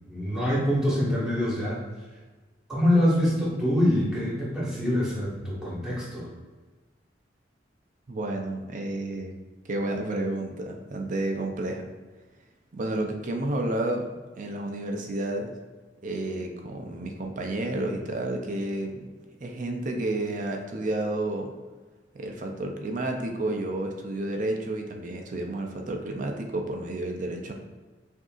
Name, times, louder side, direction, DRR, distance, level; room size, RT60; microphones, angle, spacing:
voice 1, 0.1-1.8 2.7-6.3, left 1 dB, 5° right, -8 dB, 1.4 m, -25 dB
voice 2, 8.1-9.3 9.6-11.9 12.7-14.1 14.4-15.5 16.0-19.0 19.4-21.5 22.1-27.5, right 2 dB, 45° right, 3 dB, 0.5 m, -31 dB
6.1 x 2.7 x 2.4 m, 1.3 s
head